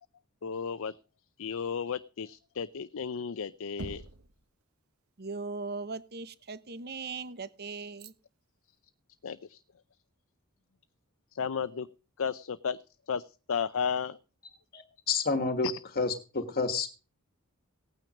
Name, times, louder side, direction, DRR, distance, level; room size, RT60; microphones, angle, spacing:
voice 1, 0.4-1.0 1.4-4.1 9.2-9.6 11.3-11.9 12.2-12.8 13.1-14.2 15.6-15.8, left 6 dB, 65° left, 15 dB, 0.6 m, -33 dB
Knock, 3.8-4.4, right 2 dB, 75° right, 1.4 m, -41 dB
voice 2, 5.2-8.1, right 4 dB, 50° right, 15 dB, 1.0 m, -39 dB
voice 3, 14.7-15.7 16.0-16.9, left 4 dB, 45° left, 9 dB, 1.5 m, -29 dB
17.0 x 9.2 x 5.0 m, 0.36 s
head